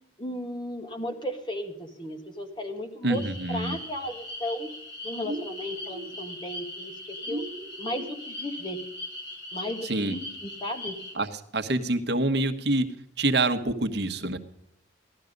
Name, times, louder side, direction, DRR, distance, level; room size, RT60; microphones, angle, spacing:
voice 1, 0.2-4.7 5.0-7.4 7.8-8.8 9.5-11.0, equal, 25° left, 5 dB, 1.9 m, -35 dB
voice 2, 3.0-3.8 9.9-10.2 11.1-11.3 11.5-12.9 13.2-14.4, right 2 dB, 60° right, 8 dB, 1.2 m, -26 dB
sound 1, 3.1-11.1, left 1 dB, 65° left, 4.4 m, -40 dB
sound 2, 5.2-6.1 7.3-8.2, right 1 dB, 45° right, 1.4 m, -37 dB
16.5 x 12.0 x 5.2 m, 0.78 s
head